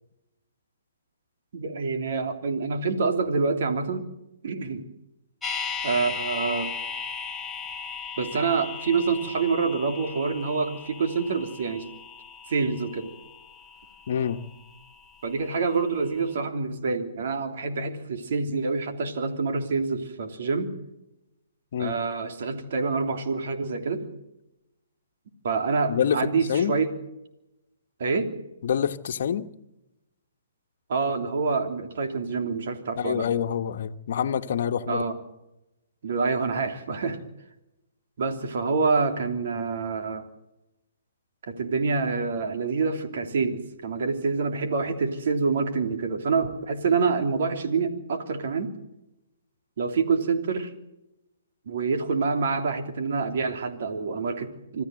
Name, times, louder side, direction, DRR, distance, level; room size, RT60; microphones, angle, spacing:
voice 1, 1.5-4.1 4.4-4.8 5.8-6.7 8.2-11.8 12.5-13.1 15.2-20.7 21.8-24.1 25.4-26.9 28.0-28.3 30.9-33.3 34.9-35.1 36.0-37.2 38.2-40.2 41.5-48.7 49.8-50.7 51.6-54.8, right 4 dB, 60° right, 3.2 m, -26 dB
sound 1, 5.4-15.5 15.7-15.8, left 5 dB, 5° left, 1.8 m, -37 dB
voice 2, 14.1-14.4 21.7-21.9 25.9-26.2 26.5-26.7 28.6-29.5 33.0-35.0, left 8 dB, 60° left, 1.4 m, -26 dB
26.0 x 14.0 x 7.9 m
hypercardioid pair, 140°, 0 cm